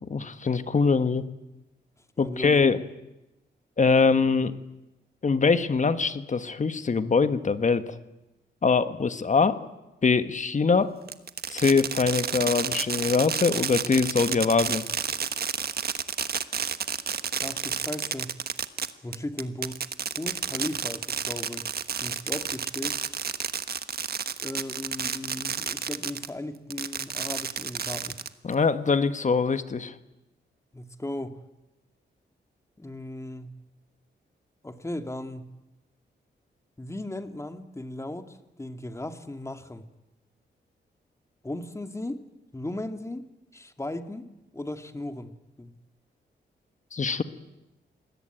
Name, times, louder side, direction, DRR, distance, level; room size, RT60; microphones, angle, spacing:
voice 1, 0.1-1.2 2.2-2.8 3.8-4.5 5.2-7.9 8.6-9.6 10.0-10.9 11.5-14.8 28.4-29.9 46.9-47.2, left 4 dB, 40° left, 11 dB, 1.6 m, -23 dB
voice 2, 2.2-2.7 17.4-18.4 19.0-19.8 20.2-21.6 22.0-22.9 24.4-28.2 30.7-31.4 32.8-33.6 34.6-35.5 36.8-39.8 41.4-42.2 42.5-43.2 43.5-44.3 44.5-45.3 45.6-45.7, left 1 dB, 15° left, 8 dB, 2.3 m, -36 dB
Fireworks, 11.1-26.3 26.7-28.5, right 7 dB, 55° right, 1.3 m, -30 dB
26.5 x 21.0 x 9.1 m, 0.97 s
cardioid pair, 95°, 19 cm